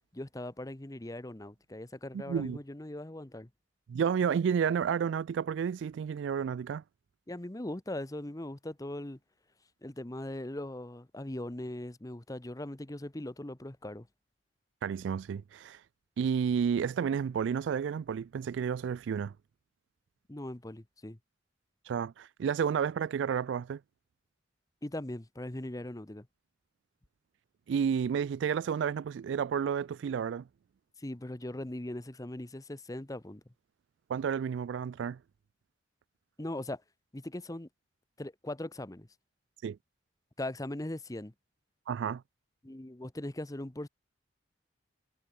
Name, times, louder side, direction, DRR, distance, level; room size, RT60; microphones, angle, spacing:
voice 1, 0.1-3.5 7.3-9.2 9.8-14.1 20.3-21.2 24.8-26.3 31.0-33.4 36.4-36.8 37.1-37.7 38.2-39.1 40.4-41.3 42.6-43.9, left 1 dB, 20° left, 0.9 m, -40 dB
voice 2, 2.1-2.6 3.9-6.8 14.8-15.8 16.2-19.3 21.9-23.8 27.7-30.5 34.1-35.2 39.6-39.8 41.9-42.2, right 7 dB, 70° right, 0.3 m, -31 dB
head